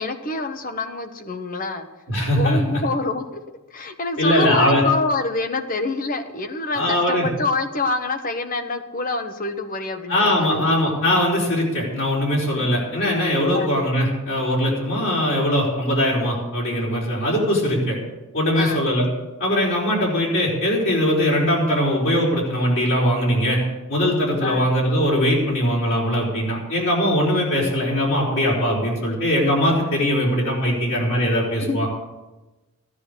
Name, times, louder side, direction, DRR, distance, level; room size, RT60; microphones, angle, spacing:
voice 1, 0.0-1.9 2.3-3.4 3.7-10.6 13.5-13.7 18.5-18.8 24.4-24.7 31.6-31.9, left 3 dB, 40° left, 8 dB, 1.2 m, -26 dB
voice 2, 2.1-2.8 4.2-4.8 6.7-7.3 10.1-18.0 18.3-19.1 19.4-23.6 23.9-31.9, equal, 60° left, -5 dB, 4.6 m, -21 dB
15.5 x 9.8 x 6.8 m, 1.1 s
head